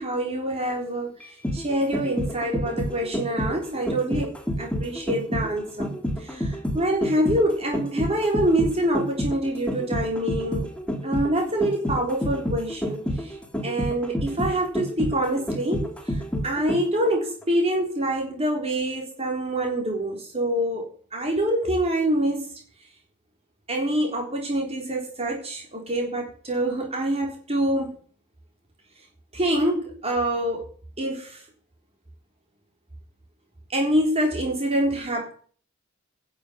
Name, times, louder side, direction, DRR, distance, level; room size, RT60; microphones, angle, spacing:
voice 1, 0.0-10.7 11.0-13.4 13.6-22.6 23.7-27.9 29.3-30.7 31.0-31.4 33.7-35.3, right 1 dB, 30° right, 0 dB, 3.9 m, -26 dB
sound 1, 1.2-17.1 17.4-17.5, equal, 5° left, 2.4 m, -29 dB
11.5 x 7.4 x 8.1 m, 0.43 s
head